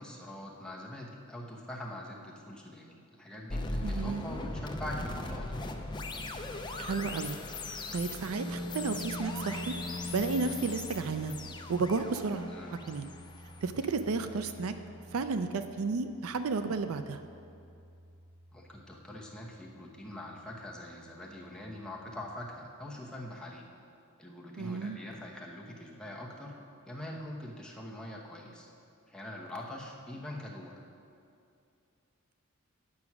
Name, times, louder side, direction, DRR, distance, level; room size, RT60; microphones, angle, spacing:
voice 1, 0.0-5.6 12.5-12.7 18.5-23.6 24.2-26.6 26.9-28.7 29.1-30.8, left 1 dB, 5° left, -2 dB, 1.0 m, -43 dB
sound 1, 3.5-14.5, left 2 dB, 20° left, 0.5 m, -40 dB
voice 2, 3.8-4.2 6.8-7.4 7.9-9.8 10.1-11.3 11.7-12.5 12.9-13.1 13.6-14.7 15.1-17.2 24.6-25.0, right 4 dB, 70° right, 9 dB, 0.4 m, -32 dB
sound 2, 8.3-22.3, equal, 50° right, 2.1 m, -45 dB
9.6 x 6.0 x 6.0 m, 2.5 s
head